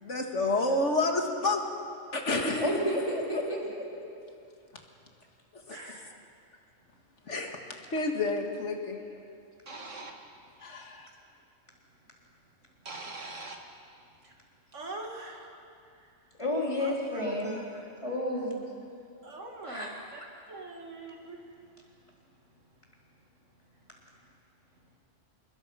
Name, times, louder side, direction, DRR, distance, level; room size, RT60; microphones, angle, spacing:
voice 1, 0.0-1.7 2.1-2.8 3.3-3.5 5.5-6.0 7.3-9.0 9.7-10.0 10.6-11.1, left 2 dB, 70° left, 2 dB, 2.1 m, -30 dB
voice 2, 2.5-3.8 16.4-17.7 18.0-18.6 19.7-20.0, left 1 dB, 25° left, -3 dB, 4.0 m, -31 dB
voice 3, 5.7-6.1 9.7-10.1 12.8-13.6 14.7-15.6 16.8-17.5 19.2-20.2 20.5-21.4, right 2 dB, 75° right, 1 dB, 2.5 m, -42 dB
26.5 x 21.5 x 5.7 m, 2.5 s
omnidirectional pair, 1.3 m